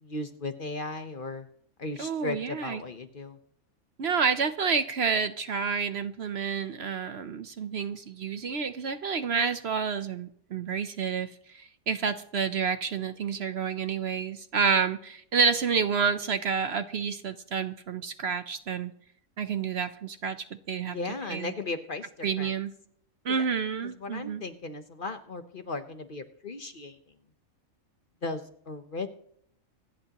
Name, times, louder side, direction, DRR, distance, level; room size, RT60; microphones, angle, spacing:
voice 1, 0.0-1.5 1.8-3.4 20.9-22.5 23.3-23.4 23.8-27.0 28.2-29.1, left 3 dB, 45° left, 8 dB, 1.0 m, -36 dB
voice 2, 2.0-2.8 4.0-18.9 19.4-20.4 20.7-21.0 21.3-21.5 22.2-22.7 23.2-24.4, right 6 dB, 55° right, 11 dB, 0.9 m, -29 dB
26.5 x 10.5 x 3.0 m, 0.66 s
omnidirectional pair, 1.4 m